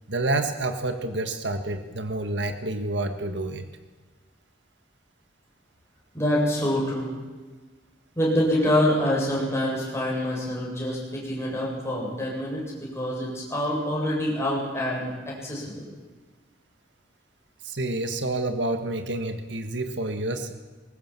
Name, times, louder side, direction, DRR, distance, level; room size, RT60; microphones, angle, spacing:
voice 1, 0.1-3.7 17.6-20.5, right 2 dB, 70° right, 7 dB, 1.7 m, -28 dB
voice 2, 6.1-7.1 8.2-15.9, left 1 dB, 15° left, -4 dB, 7.7 m, -26 dB
21.5 x 19.0 x 7.5 m, 1.3 s
head